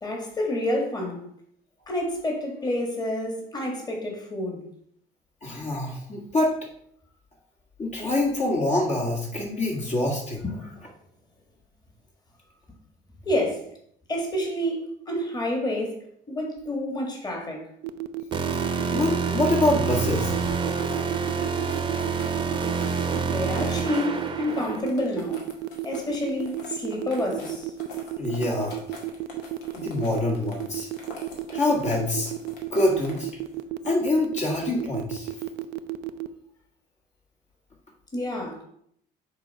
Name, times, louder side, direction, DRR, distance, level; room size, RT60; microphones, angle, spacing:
voice 1, 0.0-1.2 1.9-4.6 10.4-10.5 13.3-13.7 14.1-16.0 16.3-17.6 23.1-25.5 25.8-27.7 38.1-38.6, left 1 dB, 25° left, 1.9 m, -29 dB
voice 2, 5.4-6.5 7.8-10.4 18.9-20.3 28.2-28.8 29.7-30.9 31.5-32.3 32.7-33.3 33.9-35.3, left 2 dB, 45° left, 1.7 m, -25 dB
sound 1, 17.8-36.3, right 18 dB, 90° right, 0.5 m, -32 dB
sound 2, 18.3-24.8, right 5 dB, 30° right, 0.8 m, -27 dB
cheese boiling, 19.8-33.6, left 2 dB, 85° left, 1.9 m, -45 dB
6.7 x 4.0 x 5.5 m
cardioid pair, 110°, 17 cm